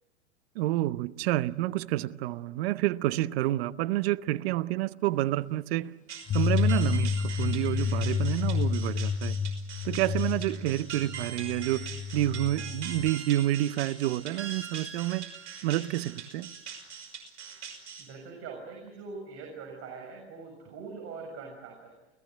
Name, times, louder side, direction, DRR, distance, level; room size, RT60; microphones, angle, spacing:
voice 1, 0.5-5.9 6.3-9.4 9.8-11.9 12.1-15.3 15.6-16.5, right 15 dB, 60° right, 1.0 m, -29 dB
sound 1, 6.1-18.1, right 7 dB, 75° right, 5.9 m, -42 dB
sound 2, 6.3-13.1, left 6 dB, 20° left, 1.2 m, -30 dB
voice 2, 18.0-22.0, right 4 dB, 40° right, 7.1 m, -43 dB
30.0 x 17.5 x 9.4 m
hypercardioid pair, 105°, 35 cm